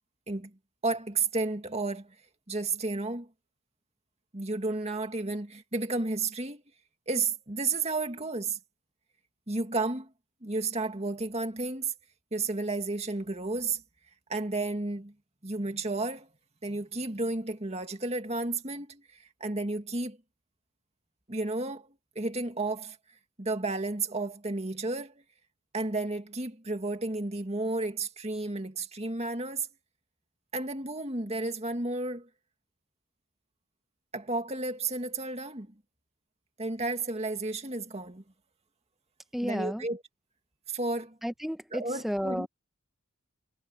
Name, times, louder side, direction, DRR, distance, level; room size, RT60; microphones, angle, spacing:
voice 1, 0.8-2.1 2.5-3.3 4.3-6.6 7.1-8.6 9.5-10.1 10.4-11.9 12.3-13.8 14.3-15.1 15.4-16.3 16.6-19.0 19.4-20.2 21.3-21.9 22.2-23.0 23.4-25.1 25.7-29.7 30.5-32.3 34.1-35.7 36.6-38.2 39.4-40.0 40.7-41.2 41.7-42.5, right 3 dB, 30° right, 2.2 m, -32 dB
voice 2, 39.3-39.9 41.2-42.5, equal, ahead, 1.2 m, -32 dB
head